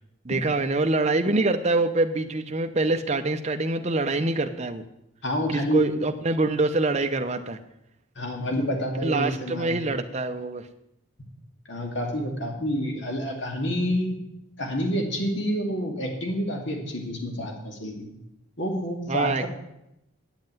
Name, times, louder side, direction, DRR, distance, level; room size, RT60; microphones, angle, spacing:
voice 1, 0.2-4.8 5.5-7.6 9.0-10.7 19.1-19.5, right 2 dB, 35° right, 6 dB, 0.7 m, -25 dB
voice 2, 5.2-6.1 8.2-9.7 11.7-14.2 14.6-18.1 18.6-19.5, equal, 60° left, 2 dB, 2.6 m, -28 dB
9.1 x 7.7 x 9.1 m, 0.84 s
head